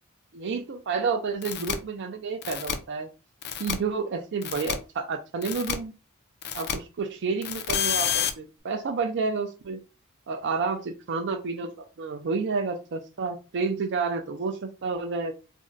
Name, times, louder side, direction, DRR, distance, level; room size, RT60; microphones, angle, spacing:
voice 1, 0.3-3.1 3.6-5.9 6.5-9.8 10.3-15.3, right 4 dB, 55° right, 6 dB, 0.5 m, -30 dB
sound 1, 1.4-1.7 2.4-2.7 3.4-3.7 4.4-4.7 5.4-5.7 6.4-6.7 7.4-8.3, left 9 dB, 50° left, 0.4 m, -28 dB
2.6 x 2.1 x 3.8 m, 0.32 s
head